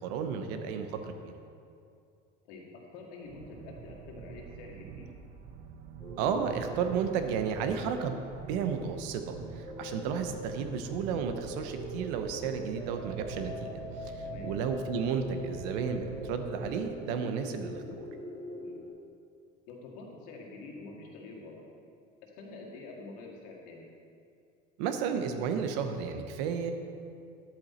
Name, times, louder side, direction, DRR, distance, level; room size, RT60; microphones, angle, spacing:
voice 1, 0.0-1.3 6.2-8.2 8.5-13.7 14.0-18.0 24.8-26.7, right 6 dB, 90° right, 7 dB, 0.9 m, -33 dB
voice 2, 2.4-5.1 14.2-14.5 18.6-18.9 19.7-21.6 22.2-23.8, left 3 dB, 80° left, -1 dB, 2.0 m, -47 dB
sound 1, 3.2-16.9, right 7 dB, 50° right, 0.6 m, -46 dB
sound 2, 6.0-18.9, left 1 dB, 10° left, 2.4 m, -44 dB
sound 3, 6.5-13.8, right 1 dB, 10° right, 0.7 m, -52 dB
10.5 x 7.9 x 4.3 m, 2.4 s
cardioid pair, 170°, 20 cm